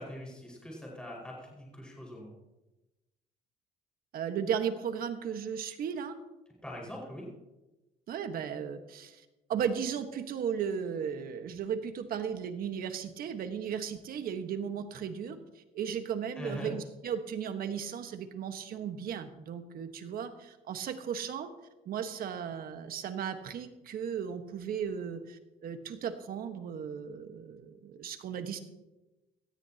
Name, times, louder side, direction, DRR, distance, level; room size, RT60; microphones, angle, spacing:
voice 1, 0.0-2.3 6.6-7.2 16.4-16.7, left 1 dB, 5° left, -3 dB, 5.1 m, -42 dB
voice 2, 4.1-6.1 8.1-15.4 15.7-21.5 21.8-28.6, right 7 dB, 60° right, 8 dB, 1.4 m, -36 dB
18.0 x 13.5 x 2.9 m, 1.0 s
cardioid pair, 110°, 17 cm